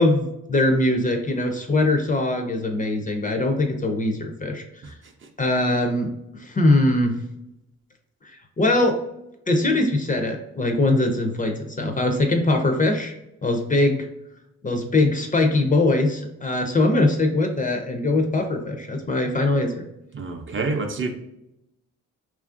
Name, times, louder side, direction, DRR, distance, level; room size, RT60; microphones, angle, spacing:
voice 1, 0.0-4.9 5.4-6.1 6.4-7.2 8.6-9.0 9.5-13.1 13.4-14.1 14.6-19.8, left 2 dB, 25° left, 0.4 m, -21 dB
voice 2, 20.1-21.1, right 3 dB, 40° right, 0.5 m, -27 dB
2.8 x 2.5 x 2.4 m
cardioid pair, 90°, 30 cm